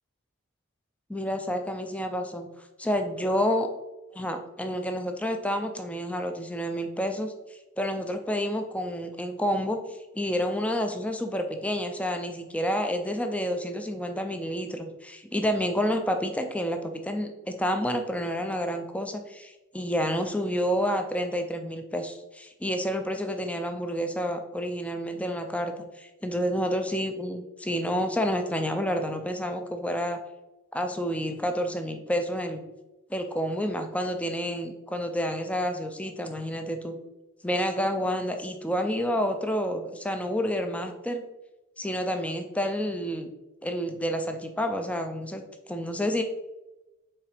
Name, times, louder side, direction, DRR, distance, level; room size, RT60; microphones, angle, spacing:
voice 1, 1.1-2.5 2.8-3.7 4.1-7.3 7.8-9.8 10.1-30.2 30.7-32.6 33.1-37.0 37.4-41.2 41.8-43.3 43.6-45.4 45.7-46.2, equal, 5° left, 6 dB, 0.6 m, -29 dB
5.7 x 3.9 x 5.1 m, 1.0 s
head